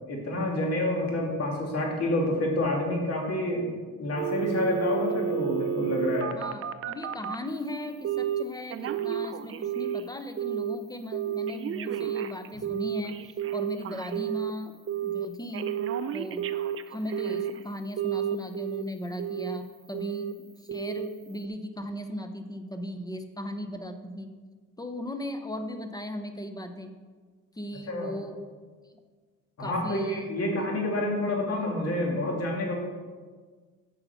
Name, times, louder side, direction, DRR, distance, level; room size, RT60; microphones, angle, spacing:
voice 1, 0.1-3.7 4.0-6.4 27.9-28.1 29.6-32.7, left 1 dB, 55° left, -1 dB, 2.2 m, -28 dB
Telephone, 4.2-7.4 8.0-8.4 8.7-10.1 10.4-10.8 11.1-14.5 14.9-15.3 15.5-17.6 18.0-18.8 19.2-19.6 19.9-20.3 20.7-21.1 21.4-21.5, right 10 dB, 45° right, 0.5 m, -31 dB
voice 2, 6.3-13.2 13.5-14.8 15.0-15.8 16.1-16.4 16.9-20.3 20.6-24.3 24.8-26.9 27.6-28.4 29.6-30.6, equal, 10° left, 7 dB, 0.7 m, -37 dB
6.7 x 5.7 x 7.0 m, 1.5 s
cardioid pair, 90°, 30 cm